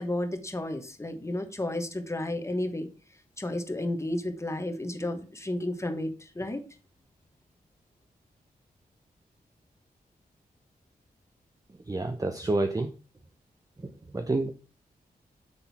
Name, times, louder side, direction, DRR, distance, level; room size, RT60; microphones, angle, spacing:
voice 1, 0.0-2.9 3.4-6.6, left 1 dB, 15° left, 6 dB, 1.1 m, -32 dB
voice 2, 11.9-12.9 14.1-14.5, right 2 dB, 20° right, 7 dB, 0.6 m, -28 dB
6.2 x 3.8 x 4.1 m, 0.36 s
cardioid pair, 55°, 16 cm